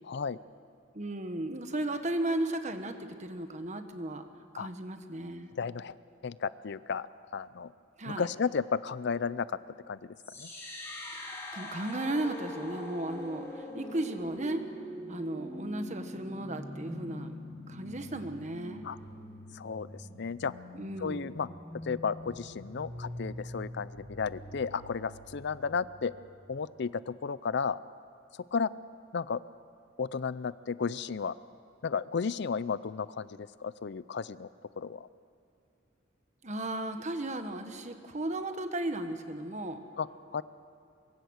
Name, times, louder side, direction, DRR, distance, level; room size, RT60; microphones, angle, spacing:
voice 1, 0.1-0.4 4.6-4.7 5.6-6.0 6.2-7.1 7.3-7.7 8.1-9.6 9.9-10.5 18.8-19.0 19.5-20.5 21.0-21.5 21.8-26.1 26.5-27.8 28.3-28.7 29.1-29.4 30.0-31.3 31.8-34.5 34.8-35.1 40.0-40.1 40.3-40.4, left 5 dB, 60° left, 17 dB, 0.5 m, -33 dB
voice 2, 0.9-4.3 4.5-5.5 8.0-8.3 11.1-14.6 15.1-17.3 17.7-18.9 20.7-21.4 36.4-39.8, right 1 dB, 40° right, 7 dB, 1.4 m, -35 dB
sound 1, 10.2-26.2, left 1 dB, 15° left, 5.0 m, -44 dB
24.0 x 23.0 x 6.5 m, 2.6 s
head